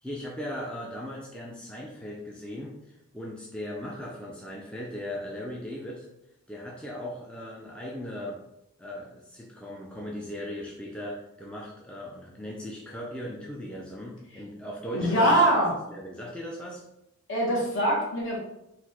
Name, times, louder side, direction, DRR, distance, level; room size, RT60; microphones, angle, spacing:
voice 1, 0.0-2.7 3.1-6.1 6.5-8.4 8.8-15.6 15.9-16.8, left 1 dB, 5° left, -3 dB, 0.4 m, -38 dB
voice 2, 14.9-15.7 17.3-18.4, right 1 dB, 55° left, -3 dB, 1.4 m, -23 dB
4.0 x 2.5 x 4.2 m, 0.85 s
head